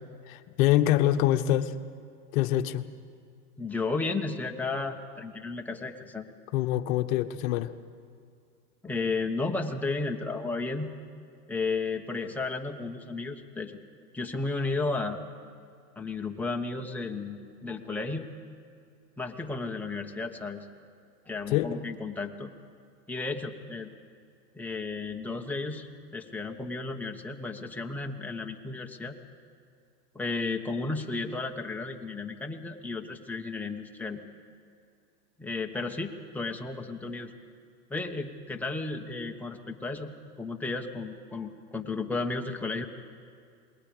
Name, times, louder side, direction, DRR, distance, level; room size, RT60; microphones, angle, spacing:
voice 1, 0.3-1.7 2.3-2.8 6.5-7.7 21.5-21.7, left 13 dB, 55° left, 9 dB, 1.2 m, -25 dB
voice 2, 3.6-6.3 8.8-10.9 11.5-13.8 14.1-15.2 16.0-18.3 19.2-20.7 21.3-22.5 23.1-23.9 24.5-25.9 26.1-29.2 30.1-34.2 35.4-37.3 37.9-42.9, left 3 dB, 5° left, 2 dB, 1.3 m, -33 dB
28.0 x 20.5 x 5.2 m, 2.3 s
hypercardioid pair, 115°, 49 cm